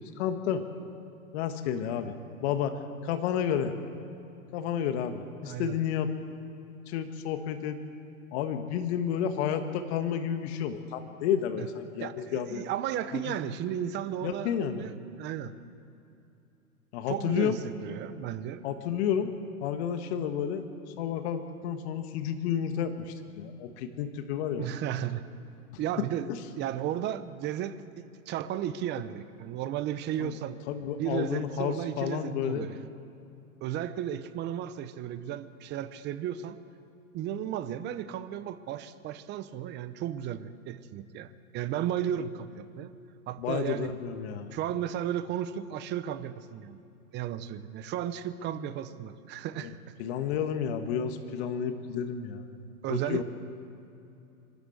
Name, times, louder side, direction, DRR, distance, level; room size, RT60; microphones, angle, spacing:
voice 1, 0.2-0.7 1.3-2.1 2.4-2.8 3.0-3.7 4.5-6.1 6.9-7.8 8.3-12.7 13.1-13.6 14.2-14.9 16.9-17.6 18.6-19.3 19.6-20.6 21.0-24.7 30.2-30.3 30.7-32.7 43.4-44.6 49.6-49.7 50.0-52.5 52.9-53.2, left 8 dB, 45° left, 7 dB, 1.7 m, -31 dB
voice 2, 5.4-5.8 11.6-11.7 12.0-15.5 17.1-18.6 24.6-25.2 25.8-26.3 26.6-27.8 28.3-30.6 31.0-32.9 33.6-36.6 37.1-42.9 43.3-43.9 44.5-46.8 47.1-49.9 52.8-53.2, right 10 dB, 25° right, 13 dB, 0.8 m, -34 dB
25.0 x 13.0 x 8.1 m, 2.7 s
hypercardioid pair, 125°, 44 cm